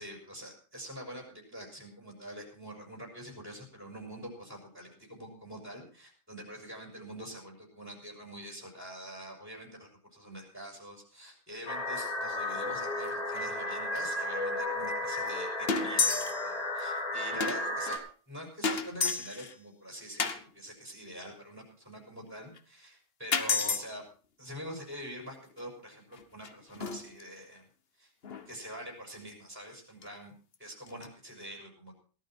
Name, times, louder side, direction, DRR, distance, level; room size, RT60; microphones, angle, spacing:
voice 1, 0.0-24.0 24.4-27.7 28.0-28.1 28.5-31.9, equal, 10° right, 0 dB, 5.3 m, -45 dB
sound 1, 11.7-18.0, left 1 dB, 25° left, 2.5 m, -34 dB
sound 2, 12.4-12.7 13.0-13.1 13.4-13.5 14.0-14.1 14.9-15.0 15.3-15.4 15.7-16.5 16.8-16.9 17.4-18.0 18.6-19.5 20.2-20.4 22.6-22.7 23.3-23.8 25.6-25.7 26.1-27.2 28.2-28.5 30.0-30.1 30.5-30.6 30.9-31.1, left 5 dB, 45° left, 1.3 m, -31 dB
17.5 x 12.5 x 4.3 m, 0.39 s
omnidirectional pair, 1.5 m